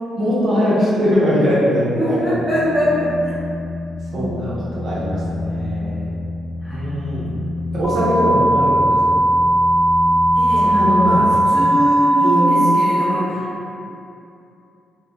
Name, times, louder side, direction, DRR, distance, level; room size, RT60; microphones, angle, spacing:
voice 1, 0.2-2.3 4.1-6.1 6.7-7.4 7.7-9.0 10.6-11.8 12.2-12.8, equal, 55° right, -9 dB, 0.5 m, -21 dB
voice 2, 1.9-3.1 4.1-4.3 6.6-6.9 10.3-11.2 11.5-13.5, equal, ahead, -12 dB, 1.1 m, -22 dB
sound 1, 2.0-11.5, left 2 dB, 55° left, 0.4 m, -29 dB
sound 2, 7.8-12.8, right 1 dB, 15° right, 0.7 m, -17 dB
2.1 x 2.0 x 2.9 m, 2.6 s
cardioid pair, 90°, 0 cm